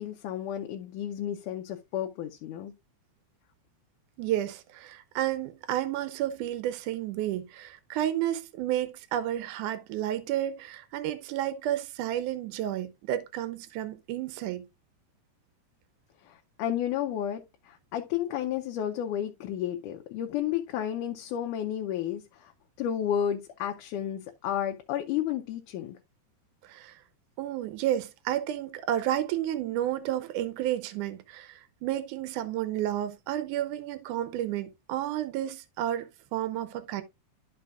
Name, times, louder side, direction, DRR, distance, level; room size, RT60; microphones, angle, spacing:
voice 1, 0.0-2.7 16.2-22.5 22.8-26.0, left 10 dB, 90° left, 2.3 m, -32 dB
voice 2, 4.2-14.6 26.6-27.0 27.4-37.0, right 12 dB, 85° right, 2.3 m, -31 dB
12.0 x 5.5 x 2.4 m
omnidirectional pair, 3.5 m